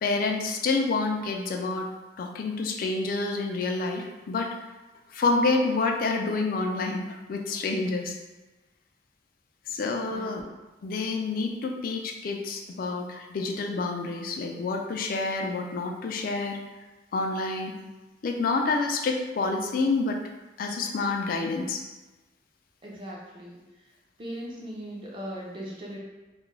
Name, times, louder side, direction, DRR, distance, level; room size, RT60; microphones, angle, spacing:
voice 1, 0.0-1.9 2.2-4.6 5.1-8.1 9.7-10.4 10.8-16.6 17.1-17.7 18.2-20.2 20.6-21.8, left 3 dB, 50° left, 2 dB, 0.3 m, -28 dB
voice 2, 10.1-10.5 22.8-23.9 24.2-26.0, equal, 30° right, -4 dB, 0.5 m, -39 dB
2.3 x 2.2 x 3.1 m, 1.1 s
head